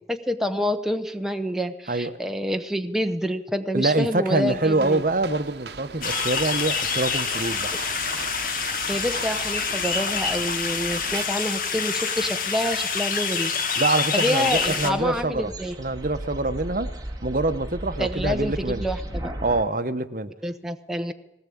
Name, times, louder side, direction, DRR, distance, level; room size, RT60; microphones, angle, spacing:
voice 1, 0.1-5.0 8.9-13.5 14.1-15.8 18.0-19.3 20.4-21.1, equal, ahead, 5 dB, 0.9 m, -27 dB
voice 2, 1.9-2.2 3.7-7.7 13.8-15.5 15.8-16.9 17.2-18.8 19.4-20.3, right 2 dB, 50° right, 11 dB, 1.0 m, -25 dB
sound 1, 4.5-11.2, right 5 dB, 75° right, 0.9 m, -39 dB
sound 2, 6.0-14.9, left 5 dB, 50° left, 1.9 m, -27 dB
sound 3, 14.5-19.6, right 1 dB, 20° right, 2.1 m, -35 dB
20.0 x 17.5 x 8.6 m, 0.88 s
head